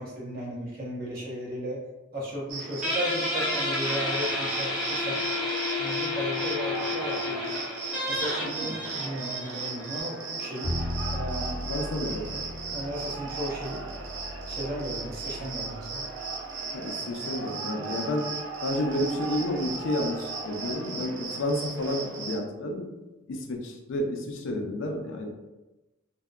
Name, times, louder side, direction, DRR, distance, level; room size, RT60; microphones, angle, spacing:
voice 1, 0.0-1.8 2.1-5.2 5.8-7.5 8.1-10.7 11.1-12.4 12.7-13.8 14.5-16.0, equal, 50° right, -5 dB, 0.8 m, -35 dB
Cricket, 2.5-22.4, right 4 dB, 80° right, 0.5 m, -36 dB
Guitar, 2.8-10.0, left 2 dB, 5° right, 0.8 m, -31 dB
voice 2, 8.4-8.7 11.7-12.2 16.7-18.3 18.6-23.0 23.3-25.3, left 1 dB, 75° left, 2 dB, 0.4 m, -31 dB
Bowed string instrument, 10.6-16.8, left 1 dB, 20° left, 1.1 m, -37 dB
2.6 x 2.1 x 2.3 m, 1.1 s
head